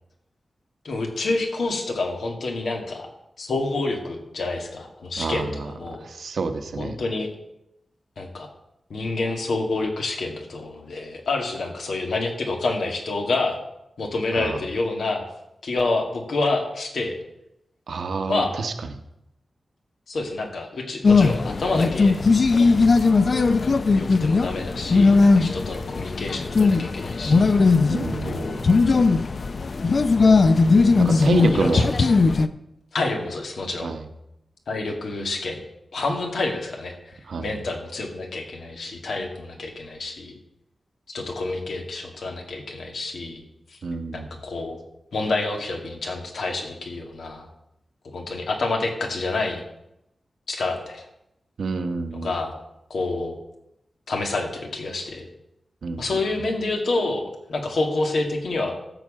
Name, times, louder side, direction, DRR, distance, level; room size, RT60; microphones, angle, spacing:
voice 1, 0.8-3.1 3.4-6.0 6.8-7.3 8.2-8.5 8.9-13.6 14.0-15.2 15.6-17.2 18.3-18.5 20.1-22.2 22.6-22.9 24.0-27.6 28.2-28.6 31.1-32.1 32.9-33.9 34.7-35.6 35.9-40.4 41.1-43.4 43.7-43.8 44.1-44.8 45.1-47.5 48.0-49.6 50.5-51.1 52.1-52.5 52.9-53.3 54.1-55.3 56.0-58.8, left 3 dB, 90° left, 2 dB, 2.1 m, -28 dB
voice 2, 5.2-5.7 6.0-7.0 14.3-14.6 17.9-18.7 27.9-28.6 31.0-31.9 33.8-34.0 37.3-37.4 43.8-44.3 51.6-52.3 55.8-56.2, right 4 dB, 80° right, 8 dB, 1.1 m, -27 dB
sound 1, 21.0-32.5, left 4 dB, 50° left, 0.5 m, -19 dB
13.5 x 4.7 x 7.5 m, 0.84 s
wide cardioid pair, 125°, 0 cm